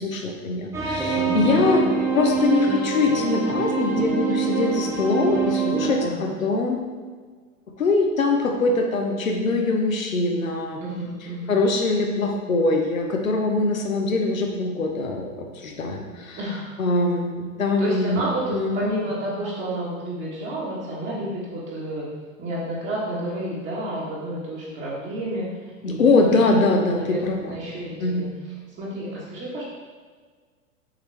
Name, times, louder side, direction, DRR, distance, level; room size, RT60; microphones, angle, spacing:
voice 1, 0.0-1.9 2.1-6.8 7.8-10.8 11.5-16.4 16.8-18.2 18.5-18.8 25.8-27.5 28.0-28.3, left 3 dB, 75° left, 2 dB, 1.0 m, -23 dB
sound 1, 0.7-6.0, right 5 dB, 5° right, 0.6 m, -24 dB
voice 2, 1.1-1.7 6.0-6.3 10.8-11.5 16.3-16.7 17.8-22.0 22.4-29.6, right 1 dB, 25° right, -6 dB, 1.4 m, -31 dB
6.4 x 4.3 x 3.4 m, 1.5 s
figure-of-eight pair, 95°, 41 cm